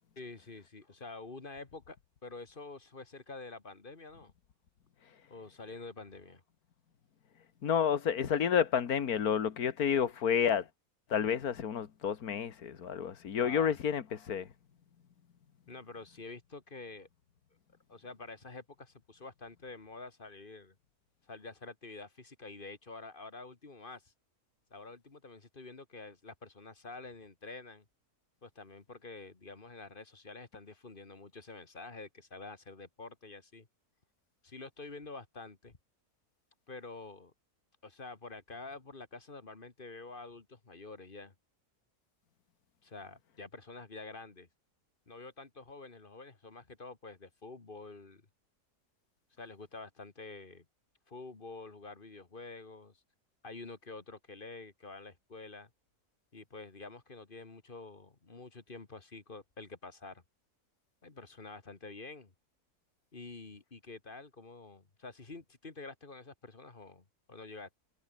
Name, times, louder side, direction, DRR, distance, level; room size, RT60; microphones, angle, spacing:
voice 1, 0.2-2.0 2.2-4.3 5.3-6.4 13.4-13.8 15.7-17.1 17.9-20.8 21.3-24.1 24.7-27.8 28.4-33.7 34.4-35.8 36.7-37.3 37.8-41.3 42.8-44.5 45.1-48.2 49.4-50.7 51.1-53.0 53.4-55.7 56.3-60.2 61.0-62.3 63.1-67.8, left 3 dB, 35° left, 2.0 m, -48 dB
voice 2, 7.6-10.7 11.1-14.5, left 8 dB, 70° left, 1.9 m, -30 dB
omnidirectional pair, 1.6 m